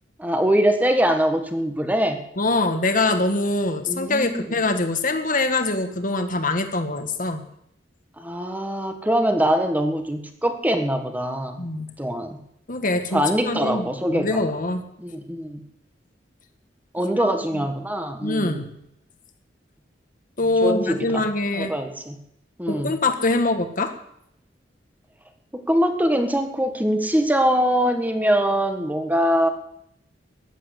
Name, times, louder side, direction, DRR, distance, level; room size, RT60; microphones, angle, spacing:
voice 1, 0.2-2.2 3.9-4.5 8.2-11.6 12.0-12.4 13.1-14.4 15.0-15.6 16.9-18.6 20.6-21.2 21.5-22.2 22.6-22.9 25.5-29.5, equal, 10° right, 6 dB, 1.6 m, -23 dB
voice 2, 2.4-7.4 11.6-11.9 12.7-14.8 17.2-17.7 18.2-18.7 20.4-21.7 22.7-23.9, left 2 dB, 50° left, 7 dB, 1.7 m, -24 dB
15.0 x 11.0 x 8.1 m, 0.76 s
head